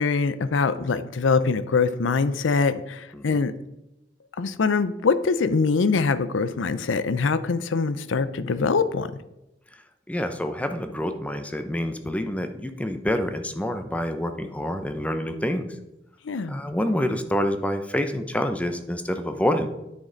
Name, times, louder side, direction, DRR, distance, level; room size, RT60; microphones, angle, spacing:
voice 1, 0.0-3.5 4.4-9.1 16.2-16.5, left 4 dB, 80° left, 14 dB, 0.5 m, -23 dB
voice 2, 10.1-15.7 16.5-19.7, equal, 5° left, 8 dB, 0.6 m, -27 dB
9.5 x 6.3 x 3.9 m, 0.92 s
head